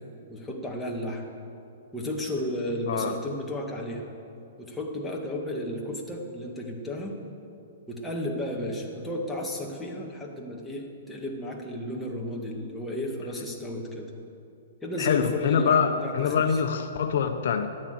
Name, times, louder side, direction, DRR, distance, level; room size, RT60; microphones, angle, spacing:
voice 1, 0.3-1.2 1.9-4.0 4.6-7.1 7.9-14.1 14.8-16.6, left 1 dB, 5° left, -2 dB, 1.9 m, -33 dB
voice 2, 15.0-17.7, left 7 dB, 65° left, 7 dB, 1.0 m, -24 dB
14.0 x 9.8 x 7.8 m, 2.7 s
hypercardioid pair, 150°, 0 cm